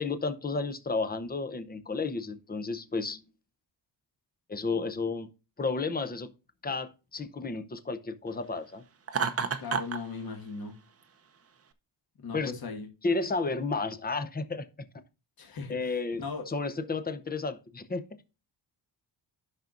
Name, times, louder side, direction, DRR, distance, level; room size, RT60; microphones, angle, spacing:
voice 1, 0.0-3.2 4.5-5.3 5.6-6.3 6.6-8.8 12.3-12.5 13.0-14.7 15.7-18.0, left 4 dB, 20° left, 0.7 m, -32 dB
Laughter, 9.1-10.0, right 6 dB, 35° right, 0.7 m, -29 dB
voice 2, 9.6-10.8 12.2-12.9 15.4-16.5, left 4 dB, 55° left, 2.0 m, -38 dB
13.0 x 6.0 x 2.5 m
wide cardioid pair, 170°, 43 cm